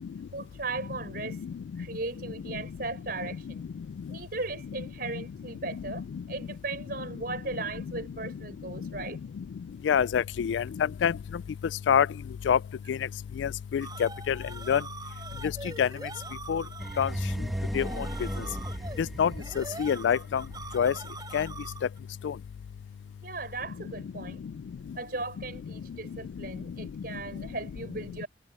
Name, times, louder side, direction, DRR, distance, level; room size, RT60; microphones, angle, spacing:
voice 1, 0.3-1.4 1.8-3.7 4.1-9.2 23.2-24.4 24.9-28.3, right 3 dB, 55° right, 5.0 m, -37 dB
voice 2, 9.9-10.6 11.0-11.1 11.9-12.1 12.5-12.6 12.9-13.0 13.4-14.4 14.7-14.8 15.8-15.9 16.5-16.6 17.0-17.1 17.7-17.8 19.2-19.3 19.6-20.4 20.7-20.9 21.3-21.5, left 8 dB, 90° left, 0.3 m, -24 dB
sound 1, 13.8-22.0, right 3 dB, 25° right, 3.3 m, -43 dB
sound 2, 16.8-20.7, equal, ahead, 1.4 m, -35 dB
head